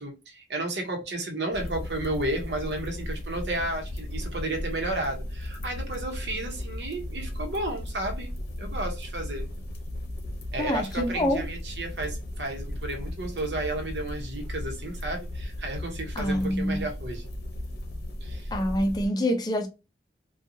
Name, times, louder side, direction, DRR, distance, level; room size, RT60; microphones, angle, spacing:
voice 1, 0.0-8.3 8.6-9.5 10.5-17.3 18.2-18.5, right 1 dB, 80° right, 0.9 m, -32 dB
sound 1, 1.5-19.1, left 1 dB, 60° left, 0.7 m, -36 dB
voice 2, 10.6-11.4 16.2-16.9 18.5-19.7, equal, 25° left, 0.5 m, -26 dB
2.7 x 2.3 x 2.6 m
head